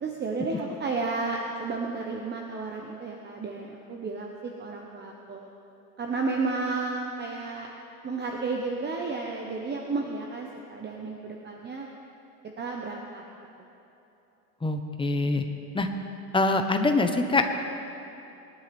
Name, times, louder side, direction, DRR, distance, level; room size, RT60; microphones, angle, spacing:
voice 1, 0.0-5.5 6.0-7.7 8.0-11.9 12.6-13.2, right 3 dB, 20° right, 1 dB, 1.2 m, -32 dB
voice 2, 14.6-15.4 15.7-15.9 16.3-17.5, left 2 dB, 10° left, 6 dB, 1.1 m, -24 dB
21.5 x 11.0 x 3.6 m, 3.0 s
hypercardioid pair, 105°, 47 cm